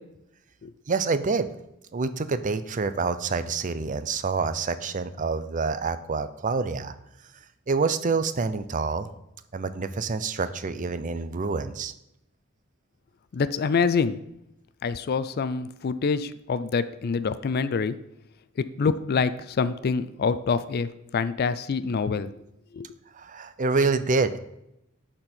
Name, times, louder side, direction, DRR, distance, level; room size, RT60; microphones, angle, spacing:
voice 1, 0.9-1.5 1.9-7.0 7.7-9.1 9.5-11.9 23.1-24.4, right 4 dB, 40° right, 12 dB, 0.5 m, -27 dB
voice 2, 13.3-14.2 14.8-18.0 18.8-20.9 21.1-22.3 22.7-22.9, left 5 dB, 50° left, 14 dB, 0.4 m, -26 dB
11.5 x 4.4 x 4.4 m, 0.84 s
head